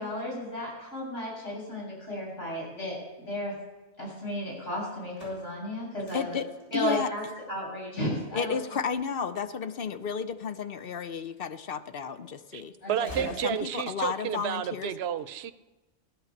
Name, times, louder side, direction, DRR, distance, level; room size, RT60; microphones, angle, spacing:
voice 1, 0.0-3.5 4.0-6.4 6.7-7.2 7.5-8.5 12.8-13.4, equal, 90° left, -4 dB, 8.0 m, -34 dB
sound 1, 4.9-10.8 11.4-12.2 12.5-14.1, right 1 dB, 70° left, 5.8 m, -51 dB
voice 2, 6.1-7.1 8.3-12.7 13.2-14.9, left 6 dB, 55° left, 11 dB, 0.9 m, -32 dB
voice 3, 12.9-15.5, right 9 dB, 65° right, 12 dB, 0.9 m, -31 dB
16.0 x 11.5 x 7.3 m, 1.1 s
omnidirectional pair, 1.2 m